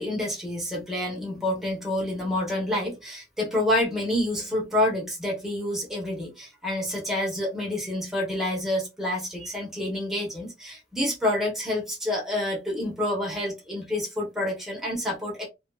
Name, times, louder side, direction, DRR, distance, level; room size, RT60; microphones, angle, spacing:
voice 1, 0.0-15.5, left 1 dB, ahead, -3 dB, 0.9 m, -28 dB
2.5 x 2.4 x 2.3 m, 0.23 s
head